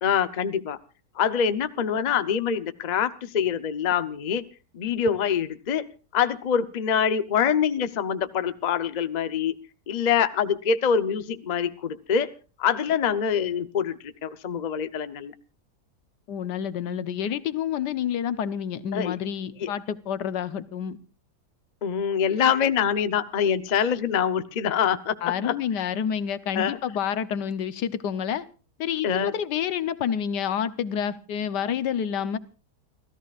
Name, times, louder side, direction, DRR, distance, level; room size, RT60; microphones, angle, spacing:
voice 1, 0.0-0.8 1.1-4.5 4.7-9.6 9.9-12.3 12.6-15.3 18.9-19.2 19.6-19.7 21.8-25.8 26.5-26.8 29.0-29.3, left 7 dB, 40° left, 11 dB, 0.6 m, -25 dB
voice 2, 16.3-21.0 25.2-28.4 28.8-32.4, left 8 dB, 85° left, 13 dB, 1.5 m, -28 dB
30.0 x 14.0 x 2.4 m, 0.35 s
omnidirectional pair, 1.8 m